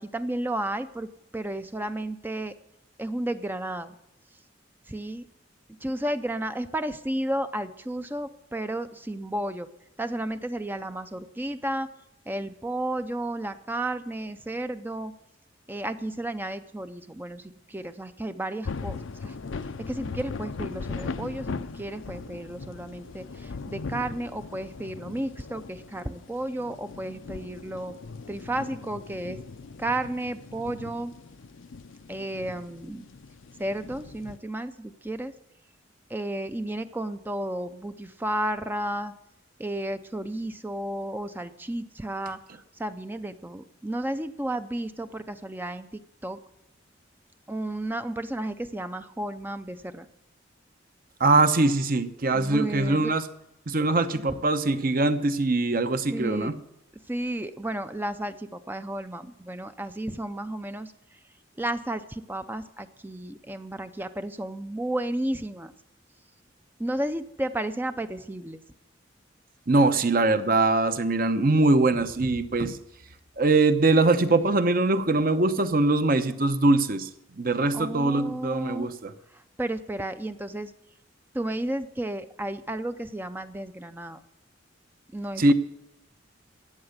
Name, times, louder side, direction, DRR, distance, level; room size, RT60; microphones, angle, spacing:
voice 1, 0.0-2.5 3.0-4.0 4.9-5.3 5.7-9.7 10.0-11.9 12.3-15.1 15.7-19.4 19.8-28.0 28.3-29.4 29.8-31.1 32.1-33.1 33.6-35.3 36.1-39.1 39.6-46.4 47.5-50.1 52.3-53.1 54.1-54.2 56.1-56.5 57.1-61.2 61.6-65.7 66.8-68.6 77.7-78.9 79.3-80.7 81.3-84.2 85.1-85.5, right 1 dB, 10° right, 10 dB, 0.4 m, -33 dB
sound 1, 18.6-34.4, left 4 dB, 85° left, 0.6 m, -39 dB
voice 2, 51.2-53.2 53.7-56.5 69.7-72.8 73.4-77.1 77.4-79.1 85.4-85.5, right 2 dB, 45° right, 10 dB, 0.8 m, -22 dB
14.0 x 8.8 x 6.6 m, 0.84 s
head